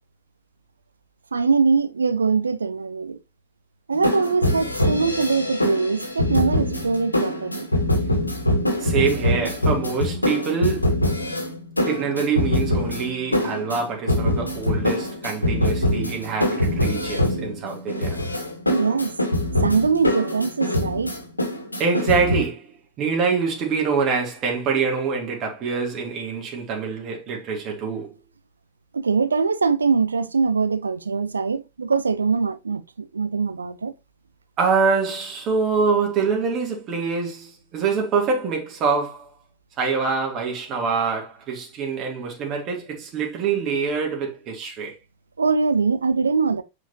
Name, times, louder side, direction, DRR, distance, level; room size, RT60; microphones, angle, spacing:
voice 1, 1.3-3.2 3.9-7.7 18.7-19.1 19.6-21.1 28.9-33.9 45.4-46.6, right 4 dB, 75° right, 0.8 m, -22 dB
sound 1, 3.9-22.4, left 1 dB, 85° left, 2.1 m, -23 dB
voice 2, 8.8-10.9 11.9-18.2 21.8-22.7 23.0-28.1 34.6-39.2 39.8-44.9, right 5 dB, 35° right, 2.7 m, -25 dB
9.1 x 5.1 x 2.9 m
figure-of-eight pair, 90°, 0 cm